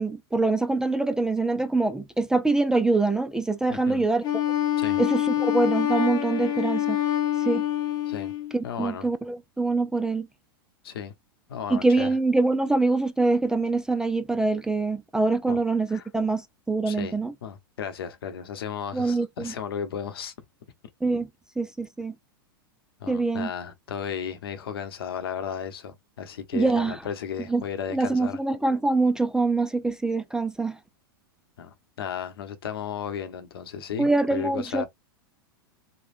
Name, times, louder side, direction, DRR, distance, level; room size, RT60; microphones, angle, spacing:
voice 1, 0.0-4.3 5.0-7.0 7.5-7.6 8.5-10.3 11.7-17.3 18.9-19.5 21.0-21.3 21.6-22.1 23.1-23.5 26.5-27.0 27.5-27.6 27.9-30.8 34.0-34.8, right 3 dB, 5° right, 0.3 m, -24 dB
voice 2, 3.7-4.1 4.8-5.0 8.1-8.3 8.6-9.1 10.8-11.1 11.5-12.1 15.5-15.6 15.9-16.1 16.9-20.3 23.0-28.4 31.6-34.9, left 8 dB, 80° left, 0.8 m, -34 dB
Wind instrument woodwind instrument, 4.2-8.5, left 11 dB, 30° left, 0.6 m, -26 dB
3.3 x 2.1 x 2.5 m
hypercardioid pair, 110°, 12 cm